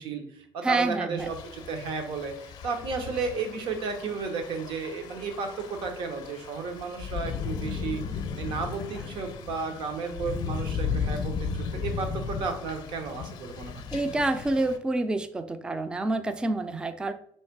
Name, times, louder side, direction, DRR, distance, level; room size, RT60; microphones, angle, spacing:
voice 1, 0.0-13.8, right 4 dB, 70° right, 5 dB, 0.9 m, -33 dB
voice 2, 0.6-1.3 13.9-17.1, right 2 dB, 10° right, 10 dB, 0.3 m, -28 dB
Thunder / Rain, 1.2-14.8, left 6 dB, 55° left, 0.5 m, -35 dB
3.5 x 3.2 x 4.5 m, 0.65 s
cardioid pair, 145°, 9 cm